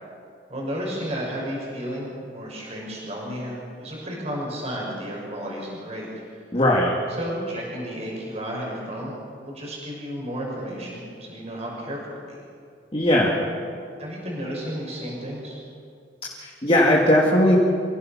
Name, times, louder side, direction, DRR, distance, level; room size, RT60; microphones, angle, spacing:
voice 1, 0.5-6.1 7.1-12.0 12.3-12.4 14.0-15.6, equal, 40° right, -3 dB, 5.9 m, -32 dB
voice 2, 6.5-6.9 12.9-13.4 16.4-17.6, left 1 dB, 35° left, -3 dB, 2.4 m, -18 dB
28.5 x 16.5 x 5.9 m, 2.3 s
head